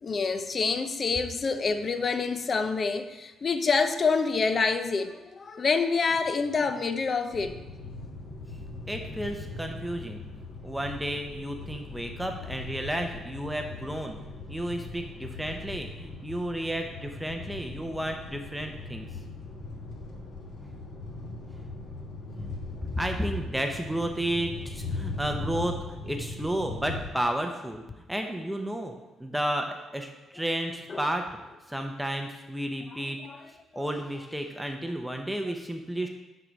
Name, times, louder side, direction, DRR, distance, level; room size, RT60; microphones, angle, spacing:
voice 1, 0.0-7.7 30.9-31.1 32.9-33.4, left 4 dB, 40° left, 9 dB, 0.6 m, -27 dB
sound 1, 7.3-27.1, left 3 dB, 65° left, 1.4 m, -39 dB
voice 2, 8.9-10.2 10.6-14.2 14.5-19.1 22.9-27.8 28.1-28.9 29.2-31.2 31.7-33.2 33.5-36.1, right 1 dB, 5° right, 4 dB, 0.8 m, -32 dB
9.7 x 4.7 x 4.0 m, 1.1 s
cardioid pair, 90°, 0 cm